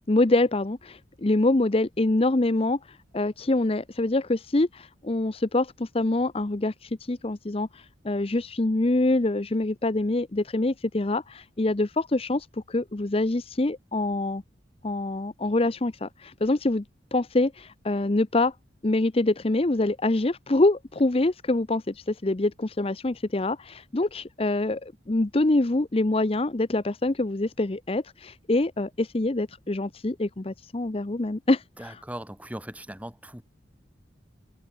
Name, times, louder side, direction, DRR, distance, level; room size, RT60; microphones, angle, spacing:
voice 1, 0.1-14.4 14.8-16.8 17.1-18.5 18.8-32.0, left 2 dB, 30° left, 0.7 m, -25 dB
voice 2, 31.8-33.4, right 1 dB, 10° right, 2.4 m, -39 dB
head